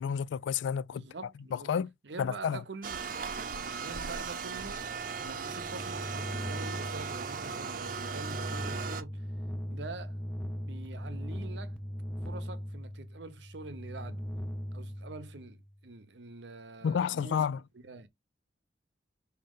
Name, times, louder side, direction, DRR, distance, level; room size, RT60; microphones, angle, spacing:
voice 1, 0.0-1.0 1.5-1.9 2.2-2.6 16.8-17.6, left 7 dB, 90° left, 0.3 m, -30 dB
voice 2, 0.9-1.7 2.0-3.1 3.7-4.9 5.2-9.3 9.7-10.2 10.6-11.8 12.2-14.2 14.7-15.6 15.8-17.5 17.7-18.1, right 3 dB, 80° right, 0.8 m, -45 dB
sound 1, 2.8-9.0, right 5 dB, 50° right, 0.6 m, -37 dB
sound 2, 5.1-15.7, equal, 5° left, 0.5 m, -39 dB
5.0 x 2.8 x 3.6 m
head